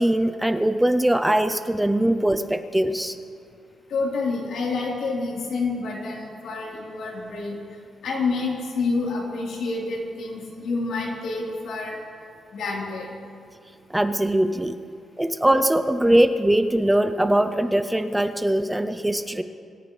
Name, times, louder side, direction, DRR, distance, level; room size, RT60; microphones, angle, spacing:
voice 1, 0.0-3.2 13.9-14.8 15.2-19.4, right 1 dB, 5° right, 9 dB, 0.4 m, -21 dB
voice 2, 3.9-7.6 8.0-12.0 12.5-13.1, left 3 dB, 80° left, -3 dB, 3.6 m, -28 dB
24.5 x 13.5 x 3.2 m, 2.2 s
wide cardioid pair, 175°, 0 cm